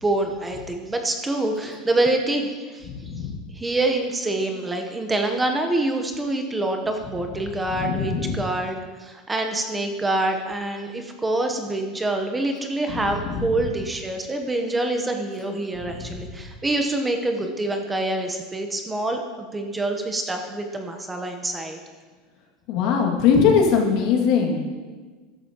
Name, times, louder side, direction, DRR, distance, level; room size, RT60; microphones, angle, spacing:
voice 1, 0.0-2.9 3.5-21.8, right 2 dB, 10° right, 4 dB, 0.9 m, -26 dB
voice 2, 3.0-3.4 7.7-8.4 12.9-13.4 16.0-16.2 22.7-24.6, left 6 dB, 60° left, 1 dB, 2.2 m, -21 dB
13.5 x 11.0 x 3.0 m, 1.4 s
supercardioid pair, 145°, 0 cm